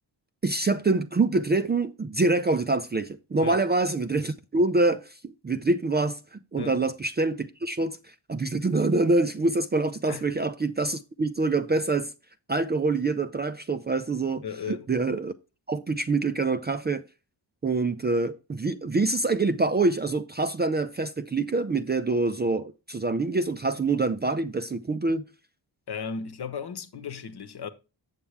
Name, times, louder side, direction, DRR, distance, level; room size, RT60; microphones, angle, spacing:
voice 1, 0.4-12.1 12.5-15.3 15.7-17.0 17.6-25.3, right 3 dB, 25° right, 0.4 m, -26 dB
voice 2, 14.4-14.9 25.9-27.7, left 6 dB, 55° left, 1.0 m, -35 dB
8.3 x 7.1 x 3.3 m
wide cardioid pair, 100°, 46 cm